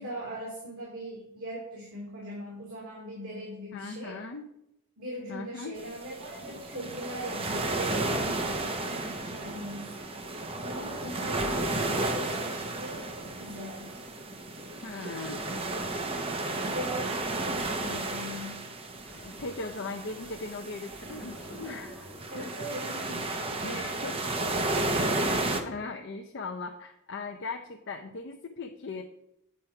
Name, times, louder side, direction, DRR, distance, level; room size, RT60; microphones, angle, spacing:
voice 1, 0.0-4.2 5.0-14.0 15.0-15.5 16.7-18.7 21.3-21.5 22.3-23.9, equal, 80° right, -4 dB, 2.8 m, -41 dB
voice 2, 3.7-4.5 5.3-5.8 14.8-15.4 19.1-22.5 23.6-24.2 25.6-29.0, left 3 dB, 55° left, 4 dB, 0.5 m, -39 dB
sound 1, 5.8-25.6, right 2 dB, 25° right, 0.7 m, -33 dB
sound 2, 15.4-22.7, left 1 dB, 10° left, 1.8 m, -52 dB
8.3 x 4.4 x 5.8 m, 0.83 s
head